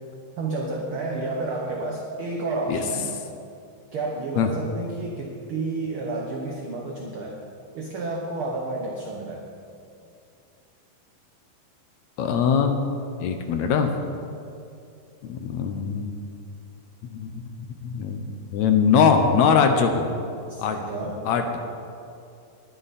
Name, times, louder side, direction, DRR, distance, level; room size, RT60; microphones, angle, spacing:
voice 1, 0.4-3.0 3.9-7.4 7.7-9.5 20.5-21.2, right 2 dB, 60° right, -1 dB, 1.5 m, -30 dB
voice 2, 12.2-12.7 13.2-13.9 15.3-16.1 17.1-20.1 20.6-20.8 21.2-21.6, left 6 dB, 70° left, 6 dB, 1.9 m, -22 dB
20.5 x 9.2 x 4.2 m, 2.5 s
omnidirectional pair, 3.8 m